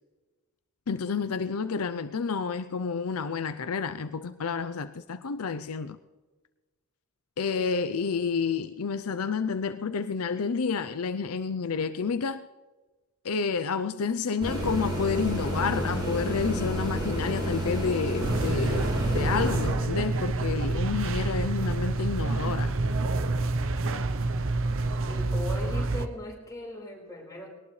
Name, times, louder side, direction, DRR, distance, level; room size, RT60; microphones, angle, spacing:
voice 1, 0.9-6.0 7.4-12.5 13.2-22.7, left 5 dB, 75° left, 0.6 m, -30 dB
sound 1, 14.4-19.7, equal, 20° right, 6.9 m, -30 dB
sound 2, 18.2-26.1, right 2 dB, 60° right, 0.7 m, -28 dB
voice 2, 25.0-27.5, left 1 dB, 15° left, 4.7 m, -38 dB
21.0 x 18.5 x 3.3 m
head